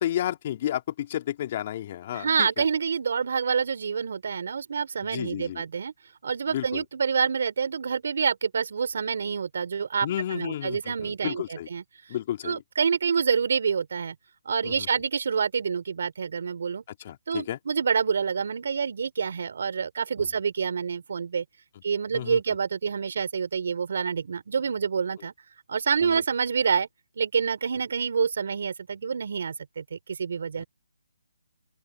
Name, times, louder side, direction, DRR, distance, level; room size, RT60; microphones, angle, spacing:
voice 1, 0.0-2.6 5.0-5.6 6.5-6.8 10.0-11.7 12.1-12.6 14.6-14.9 17.0-17.6 22.1-22.4 26.0-26.2 30.6-30.7, left 11 dB, 35° left, 3.1 m, -32 dB
voice 2, 2.1-5.9 6.2-11.8 12.4-14.2 14.4-16.8 17.3-21.4 21.8-25.3 25.7-26.9 27.2-30.6, right 6 dB, 60° right, 4.3 m, -27 dB
open air
hypercardioid pair, 155°, 0 cm